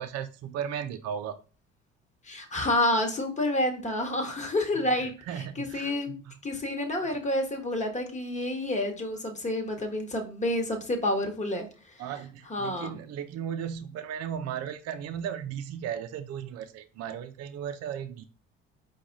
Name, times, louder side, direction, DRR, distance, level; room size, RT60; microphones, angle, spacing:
voice 1, 0.0-1.4 4.9-6.4 6.8-7.1 12.0-18.2, right 8 dB, 55° right, 8 dB, 0.5 m, -36 dB
voice 2, 2.3-6.2 6.4-11.7 12.5-12.9, left 1 dB, 25° left, 3 dB, 1.2 m, -29 dB
4.7 x 2.4 x 3.9 m, 0.35 s
supercardioid pair, 65°, 30 cm